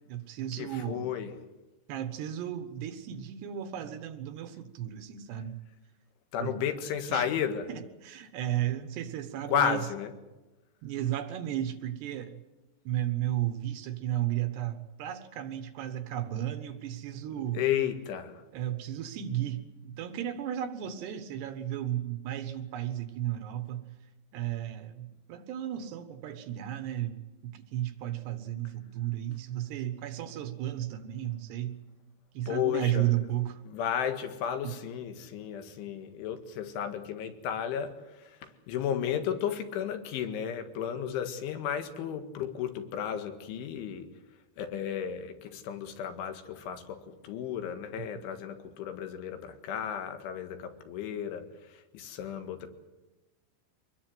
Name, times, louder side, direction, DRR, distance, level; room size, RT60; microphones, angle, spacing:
voice 1, 0.0-1.2 1.9-5.6 6.4-6.6 7.1-7.3 7.7-9.9 10.8-12.4 12.8-17.6 18.5-23.9 24.3-31.8 32.3-33.6 34.6-34.7, right 12 dB, 70° right, 9 dB, 3.1 m, -34 dB
voice 2, 0.6-1.3 6.3-7.7 9.5-10.1 17.5-18.4 32.5-33.1 33.7-44.1 44.6-52.7, left 9 dB, 80° left, 7 dB, 4.2 m, -33 dB
24.5 x 21.0 x 7.8 m, 1.1 s
omnidirectional pair, 5.4 m